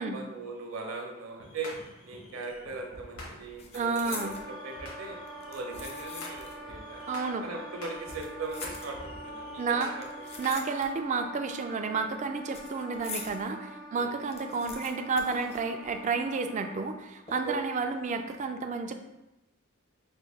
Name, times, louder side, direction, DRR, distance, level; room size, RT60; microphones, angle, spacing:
voice 1, 0.1-1.7 2.0-5.2 5.5-7.1 7.4-10.3 13.9-14.2 17.4-17.5, right 3 dB, 65° right, 2 dB, 0.7 m, -39 dB
sound 1, 1.4-10.5, left 1 dB, 70° left, 1.3 m, -48 dB
sound 2, 2.5-2.8 3.1-4.5 5.3-6.7 7.0-7.1 7.9-9.3 10.0-11.2 11.5-13.4 13.8-13.9 14.1-16.2 16.5-16.6 17.3-17.7 18.1-18.3, left 4 dB, 30° left, 0.5 m, -44 dB
voice 2, 3.7-4.4 7.1-7.4 9.6-9.9 10.4-18.9, right 4 dB, 35° right, 6 dB, 0.3 m, -31 dB
Wind instrument woodwind instrument, 4.1-17.0, right 1 dB, 85° left, 0.8 m, -44 dB
5.1 x 2.2 x 3.5 m, 0.96 s
head